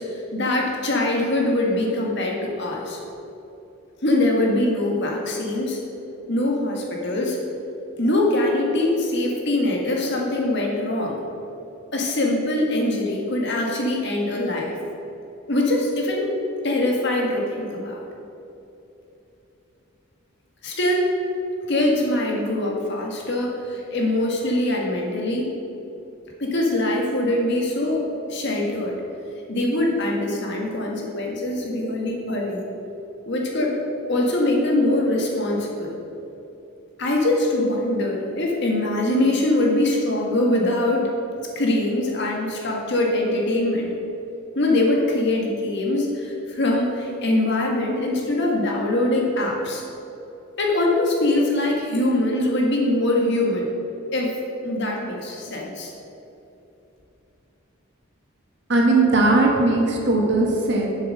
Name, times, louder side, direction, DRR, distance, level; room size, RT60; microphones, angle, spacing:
voice 1, 0.0-3.0 4.0-5.8 6.3-7.4 8.0-11.2 11.9-14.7 15.5-16.3 16.6-18.0 20.6-21.1 21.7-25.5 26.4-29.0 29.5-32.6 33.3-33.7 34.1-36.0 37.0-41.1 41.6-43.9 44.6-49.8 50.6-53.7 54.1-54.4 54.6-55.9, left 1 dB, 55° left, -1 dB, 1.7 m, -23 dB
voice 2, 58.7-60.9, right 2 dB, 55° right, -1 dB, 1.7 m, -18 dB
8.0 x 7.3 x 6.4 m, 2.9 s
head